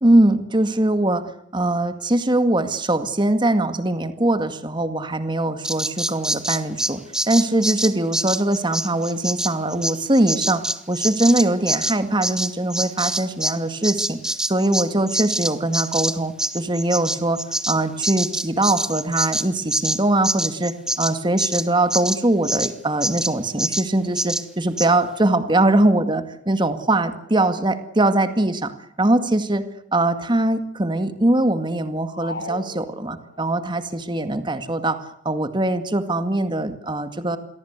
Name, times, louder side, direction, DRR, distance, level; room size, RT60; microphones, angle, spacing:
voice 1, 0.0-1.3 1.5-7.0 7.3-17.4 17.7-29.6 29.9-37.4, right 1 dB, 25° right, 9 dB, 2.0 m, -21 dB
Bird vocalization bird call bird song, 5.6-13.6 13.8-22.7 23.0-23.3 23.6-23.9 24.2-24.4 24.8-24.9, right 1 dB, 5° right, 1.3 m, -25 dB
sound 1, 32.1-33.6, left 2 dB, 75° left, 6.0 m, -36 dB
28.5 x 23.0 x 8.2 m, 0.68 s
head